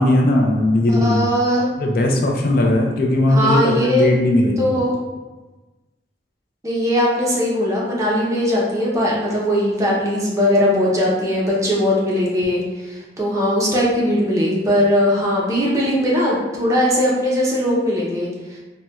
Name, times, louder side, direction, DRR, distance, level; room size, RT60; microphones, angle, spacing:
voice 1, 0.0-1.2 1.8-4.7, left 1 dB, 50° left, 1 dB, 0.3 m, -17 dB
voice 2, 0.9-1.7 3.3-4.1 4.6-4.9 6.6-18.3, equal, 15° right, -4 dB, 0.5 m, -19 dB
4.1 x 2.1 x 2.2 m, 1.2 s
head